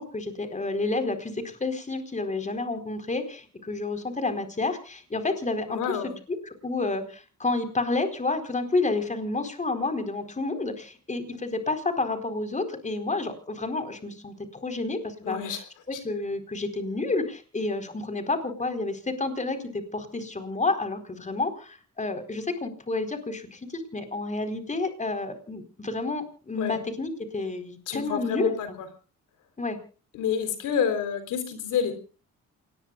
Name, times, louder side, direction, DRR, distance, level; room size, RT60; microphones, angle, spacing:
voice 1, 0.0-6.0 6.6-15.4 15.9-28.8 29.6-29.8, left 3 dB, 25° left, 7 dB, 4.3 m, -30 dB
voice 2, 5.7-6.1 15.2-15.6 15.9-16.0 26.6-26.8 27.9-28.9 30.1-31.9, left 7 dB, 85° left, 9 dB, 3.8 m, -28 dB
28.0 x 19.5 x 2.4 m, 0.37 s
cardioid pair, 90°, 30 cm